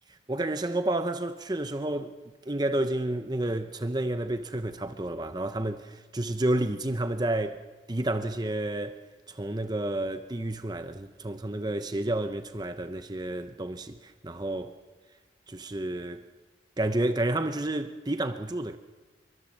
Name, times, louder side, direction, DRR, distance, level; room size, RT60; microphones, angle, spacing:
voice 1, 0.3-2.2 2.5-7.6 7.9-9.0 9.3-14.8 15.5-16.3 16.8-18.8, right 1 dB, 20° right, 0.8 m, -30 dB
25.0 x 23.0 x 7.4 m
head